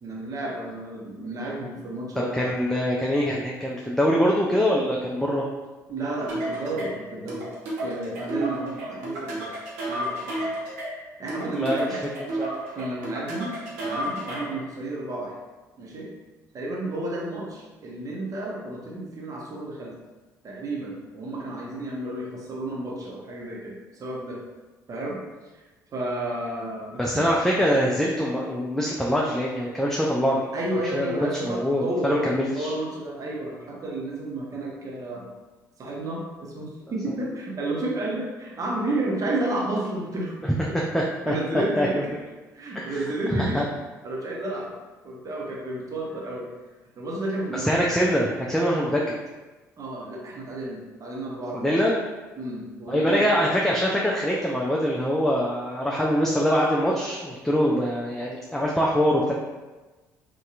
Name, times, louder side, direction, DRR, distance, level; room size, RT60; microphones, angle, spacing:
voice 1, 0.0-2.5 5.9-7.5 7.8-9.5 9.9-10.5 11.2-12.1 12.7-13.6 13.8-15.3 15.8-16.1 16.5-19.9 20.4-24.4 24.9-25.2 25.5-25.6 25.9-27.3 30.5-35.3 35.8-40.3 41.3-42.1 42.5-43.7 44.0-44.7 45.0-46.5 47.0-47.9 49.8-51.7 52.4-53.3, right 1 dB, 40° right, -3 dB, 0.8 m, -31 dB
voice 2, 2.3-5.5 11.4-12.0 12.4-12.5 27.0-30.5 30.9-32.7 40.4-40.5 40.9-41.3 41.8-42.0 42.8-42.9 43.3-43.6 47.5-49.0 51.6-52.0 52.9-59.3, equal, 5° left, -4 dB, 0.4 m, -24 dB
sound 1, 6.3-14.6, right 1 dB, 75° right, 0.6 m, -32 dB
2.7 x 2.2 x 2.5 m, 1.2 s
hypercardioid pair, 50°, 9 cm